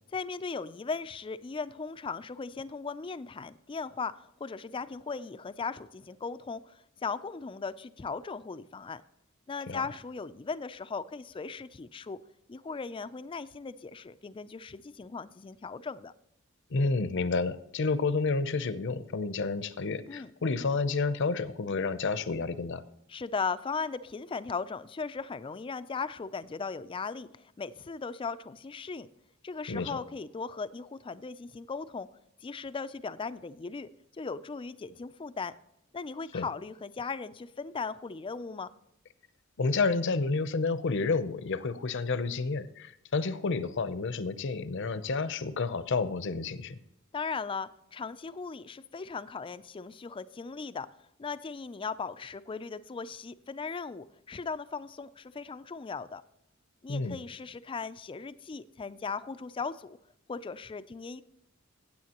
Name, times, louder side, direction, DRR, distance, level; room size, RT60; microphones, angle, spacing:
voice 1, 0.1-4.1 4.4-9.0 9.5-12.2 12.5-16.1 20.1-20.3 23.1-29.1 29.4-32.1 32.4-35.5 35.9-38.7 47.1-50.9 51.2-56.2 56.8-60.0 60.3-61.2, left 4 dB, 25° left, 14 dB, 0.4 m, -38 dB
voice 2, 16.7-22.8 29.7-30.0 36.3-36.5 39.6-46.8 56.9-57.2, left 4 dB, 60° left, 13 dB, 0.7 m, -30 dB
15.5 x 8.4 x 2.9 m, 0.76 s
head